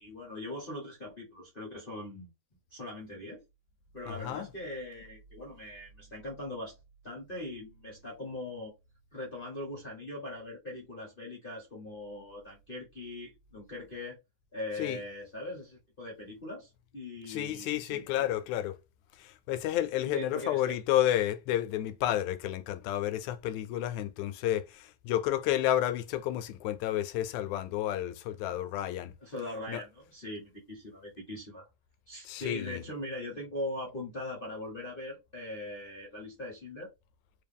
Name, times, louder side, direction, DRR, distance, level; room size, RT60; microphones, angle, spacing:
voice 1, 0.0-2.3 2.7-3.4 3.9-6.7 7.0-8.7 9.1-14.2 14.5-18.3 20.0-20.7 29.2-31.7 32.1-36.9, left 1 dB, 55° left, 0.5 m, -41 dB
voice 2, 4.1-4.5 14.8-15.0 17.3-18.8 19.2-29.1 29.7-29.8 32.3-32.8, left 12 dB, 80° left, 1.9 m, -31 dB
4.7 x 2.6 x 3.5 m
omnidirectional pair, 3.4 m